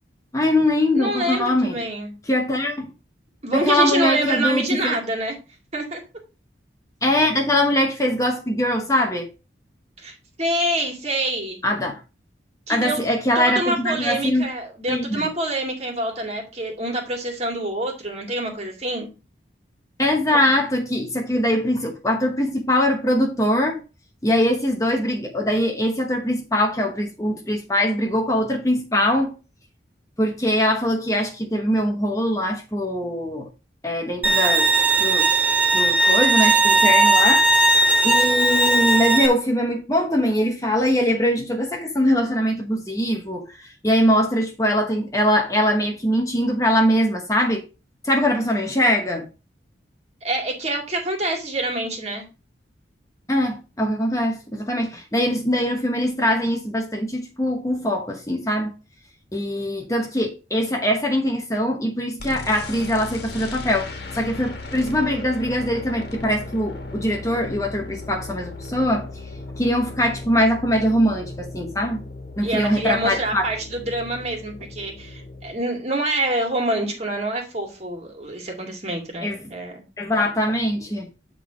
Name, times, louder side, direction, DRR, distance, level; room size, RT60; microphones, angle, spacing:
voice 1, 0.3-1.8 2.3-2.9 3.5-5.0 7.0-9.3 11.6-12.0 12.7-14.4 14.9-15.3 20.0-23.8 24.2-29.3 30.2-33.5 33.8-34.7 35.0-35.3 35.7-37.5 38.0-47.6 48.0-49.3 53.3-58.7 59.3-69.1 69.5-72.0 72.4-73.5 79.2-79.5 80.0-81.1, left 1 dB, 20° left, 1.0 m, -22 dB
voice 2, 0.9-2.1 3.4-5.4 5.7-6.0 10.0-11.6 12.7-13.0 13.4-19.1 50.2-52.2 72.4-79.8, right 1 dB, 35° right, 2.2 m, -26 dB
Bowed string instrument, 34.2-39.3, right 2 dB, 10° right, 0.9 m, -17 dB
sound 1, 62.2-75.5, left 2 dB, 60° left, 1.7 m, -36 dB
9.1 x 3.8 x 4.9 m
head